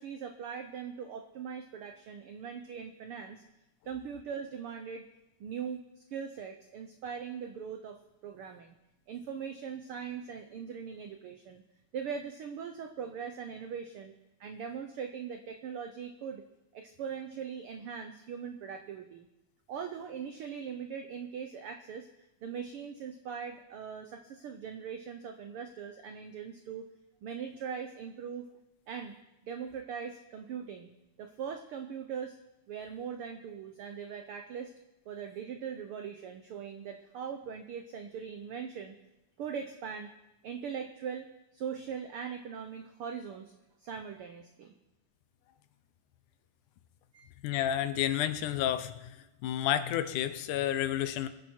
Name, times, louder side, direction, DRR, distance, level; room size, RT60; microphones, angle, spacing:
voice 1, 0.0-3.4 3.8-5.1 5.4-8.7 9.1-11.6 11.9-14.1 14.4-16.4 16.7-19.3 19.7-26.9 27.2-28.5 28.9-29.2 29.4-30.9 31.2-32.4 32.7-34.7 35.1-39.0 39.4-40.1 40.4-41.3 41.5-43.5 43.8-44.7 47.1-47.3, right 7 dB, 85° right, 7 dB, 1.2 m, -40 dB
voice 2, 47.4-49.2 49.4-51.3, left 11 dB, 80° left, 11 dB, 2.3 m, -30 dB
23.5 x 10.5 x 4.5 m, 0.94 s
omnidirectional pair, 3.6 m